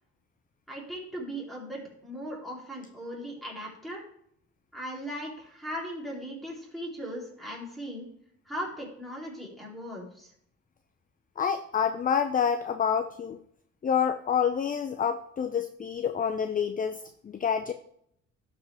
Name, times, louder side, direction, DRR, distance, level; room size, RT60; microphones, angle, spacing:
voice 1, 0.7-4.0 4.7-8.1 8.5-10.3, equal, ahead, -4 dB, 3.4 m, -38 dB
voice 2, 11.4-13.4 13.8-17.7, left 7 dB, 30° left, 10 dB, 0.5 m, -28 dB
11.5 x 5.1 x 3.5 m, 0.70 s
cardioid pair, 90°, 30 cm